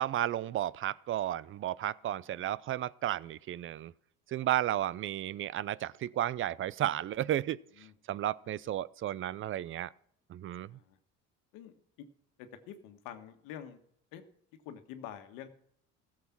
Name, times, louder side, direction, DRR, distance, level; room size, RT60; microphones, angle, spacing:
voice 1, 0.0-3.9 4.3-7.6 8.1-9.9 10.3-10.7, right 12 dB, 40° right, 0.5 m, -33 dB
voice 2, 2.0-2.5 7.8-7.9 10.7-11.0 11.5-12.1 12.4-13.8 14.1-14.2 14.6-15.5, left 9 dB, 85° left, 1.6 m, -47 dB
15.0 x 7.4 x 6.0 m
cardioid pair, 100°, 32 cm